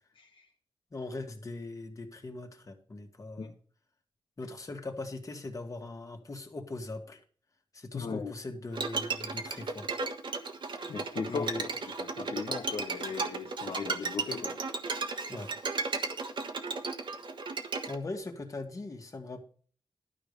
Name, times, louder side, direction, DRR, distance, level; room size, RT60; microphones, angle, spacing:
voice 1, 0.1-0.5 3.4-3.5 7.9-8.4 10.9-11.5 12.0-14.6, left 5 dB, 75° left, 2 dB, 1.3 m, -37 dB
voice 2, 0.9-3.5 4.4-7.2 7.7-10.1 11.3-11.7 15.3-15.5 17.9-19.4, left 2 dB, 40° left, 4 dB, 1.9 m, -40 dB
Bowed string instrument, 8.7-18.0, right 4 dB, 60° right, 1.4 m, -35 dB
12.5 x 5.1 x 6.7 m, 0.43 s
wide cardioid pair, 120°, 9 cm